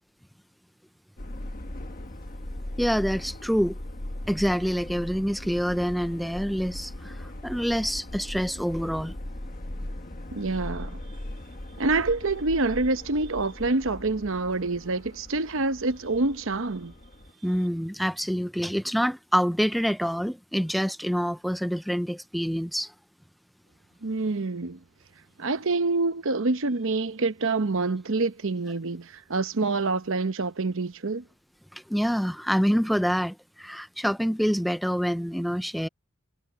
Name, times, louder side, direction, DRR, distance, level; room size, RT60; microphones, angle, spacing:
Subway metro underground, 1.2-17.3, left 1 dB, 40° left, 1.3 m, -39 dB
voice 1, 2.8-3.7 4.3-9.2 17.4-22.9 31.7-35.9, equal, ahead, 0.5 m, -26 dB
voice 2, 10.3-11.0 11.8-16.9 24.0-24.8 25.4-31.2, right 3 dB, 60° right, 0.9 m, -26 dB
head